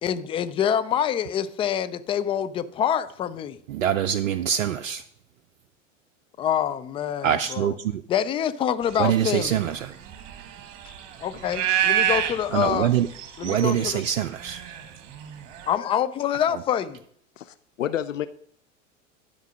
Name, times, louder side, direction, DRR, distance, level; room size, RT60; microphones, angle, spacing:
voice 1, 0.0-3.6 6.4-7.7 8.1-9.6 11.2-13.0 13.4-14.0 15.7-17.0, left 9 dB, 15° left, 0.4 m, -26 dB
voice 2, 3.7-5.0 7.2-8.0 9.0-9.9 12.5-13.1 13.4-14.6, right 10 dB, 70° right, 0.6 m, -24 dB
sound 1, 8.9-15.7, right 10 dB, 45° right, 1.5 m, -29 dB
voice 3, 17.4-18.3, left 11 dB, 75° left, 0.5 m, -29 dB
11.5 x 5.2 x 6.1 m
figure-of-eight pair, 80°, 39 cm